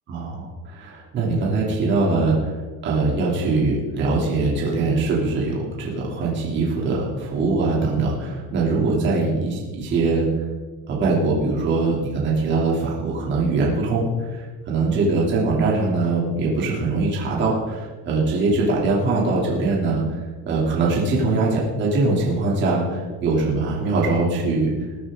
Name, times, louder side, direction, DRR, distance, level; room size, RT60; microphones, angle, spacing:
voice 1, 0.1-10.3 10.9-20.0 20.4-24.7, right 3 dB, 30° right, -4 dB, 3.0 m, -22 dB
21.5 x 9.5 x 3.8 m, 1.3 s
cardioid pair, 180°, 35 cm